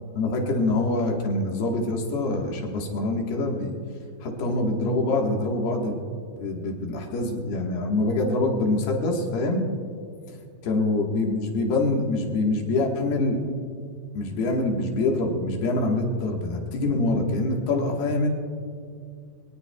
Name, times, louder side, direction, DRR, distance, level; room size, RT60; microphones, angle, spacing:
voice 1, 0.1-3.7 4.2-6.0 6.4-9.7 10.6-13.4 14.1-18.3, left 2 dB, 70° left, 0 dB, 3.3 m, -25 dB
25.5 x 18.5 x 2.3 m, 2.2 s
omnidirectional pair, 5.1 m